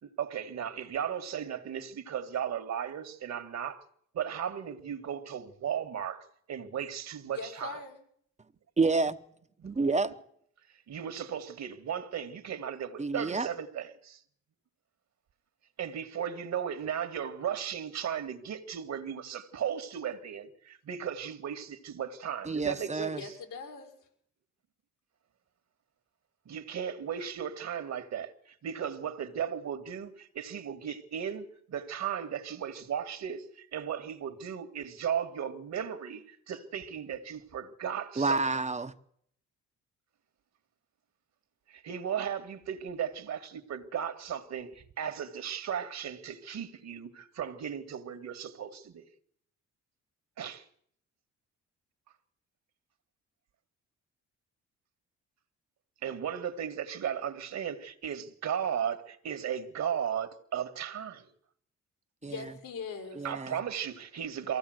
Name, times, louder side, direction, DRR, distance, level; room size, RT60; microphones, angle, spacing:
voice 1, 0.0-3.9 4.1-7.8 9.6-9.7 10.9-14.2 15.8-23.3 26.5-38.4 41.7-49.1 50.4-50.7 56.0-61.3 63.2-64.6, right 8 dB, 60° right, 1.9 m, -36 dB
voice 2, 7.3-8.0 23.1-24.1 62.2-63.3, left 4 dB, 85° left, 5.9 m, -41 dB
voice 3, 8.8-9.2 9.6-10.1 13.0-13.5 22.5-23.2 38.2-38.9 62.2-62.4 63.2-63.6, right 3 dB, 25° right, 1.0 m, -29 dB
23.5 x 16.0 x 7.9 m
cardioid pair, 90°, 30 cm